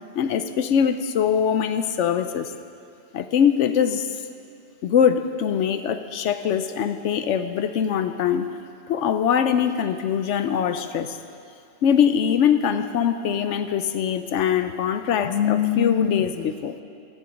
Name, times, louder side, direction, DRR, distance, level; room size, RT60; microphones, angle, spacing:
voice 1, 0.2-2.5 3.1-4.2 4.8-8.5 8.9-11.2 11.8-16.8, left 8 dB, 85° left, 10 dB, 1.0 m, -22 dB
24.5 x 9.8 x 5.1 m, 2.4 s
omnidirectional pair, 1.2 m